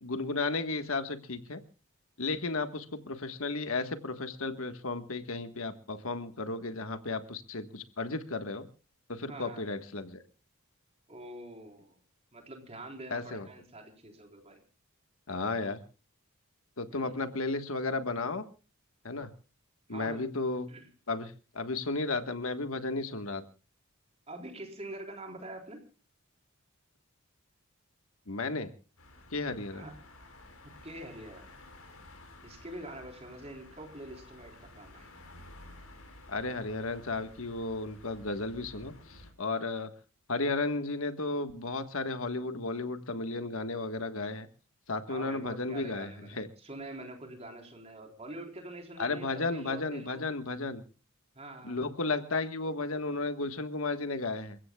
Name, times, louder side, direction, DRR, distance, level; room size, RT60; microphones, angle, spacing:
voice 1, 0.0-1.6 2.2-8.6 9.1-10.2 13.1-13.5 15.3-15.8 16.8-18.4 19.0-19.3 19.9-20.7 21.1-23.4 28.3-28.7 29.3-29.9 36.3-39.9 40.3-44.5 44.9-46.5 49.0-50.8 51.6-54.6, left 3 dB, 70° left, 9 dB, 1.5 m, -34 dB
voice 2, 9.3-9.7 11.1-12.0 12.3-14.6 16.9-17.2 19.9-20.2 20.7-20.9 24.3-25.8 29.7-29.9 30.6-31.6 32.4-35.1 45.1-50.4 51.4-51.8, right 1 dB, 30° right, 3 dB, 4.1 m, -45 dB
sound 1, 29.0-39.3, left 2 dB, 90° left, 5.6 m, -53 dB
28.5 x 16.0 x 2.3 m, 0.35 s
head